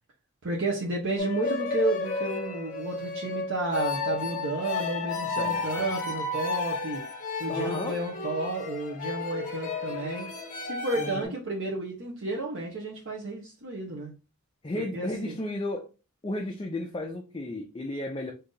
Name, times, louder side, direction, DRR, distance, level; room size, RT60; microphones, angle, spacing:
voice 1, 0.4-7.0 7.4-10.3 10.6-14.1 14.7-15.4, right 2 dB, 60° right, 0.8 m, -32 dB
sound 1, 1.2-11.2, left 3 dB, 40° left, 1.1 m, -32 dB
voice 2, 5.4-5.9 7.5-8.0 10.9-11.3 14.6-15.9 16.2-18.3, left 1 dB, 20° left, 0.5 m, -33 dB
3.8 x 2.7 x 3.7 m
head